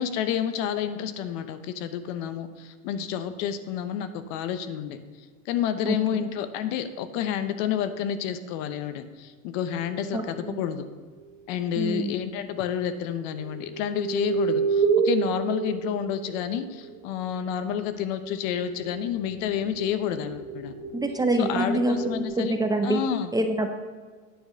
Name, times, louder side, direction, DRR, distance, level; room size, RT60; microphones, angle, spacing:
voice 1, 0.0-5.0 5.5-10.9 11.5-20.7 21.4-22.6 22.8-23.3, left 9 dB, 70° left, 11 dB, 0.9 m, -29 dB
sound 1, 8.6-10.3 11.9-12.0 13.3-17.0 17.9-22.3, right 6 dB, 80° right, 1.5 m, -30 dB
voice 2, 10.1-10.6 11.8-12.1 20.9-23.0 23.3-23.7, right 1 dB, 10° right, 5 dB, 0.6 m, -26 dB
9.3 x 4.9 x 6.2 m, 1.5 s
supercardioid pair, 115°, 41 cm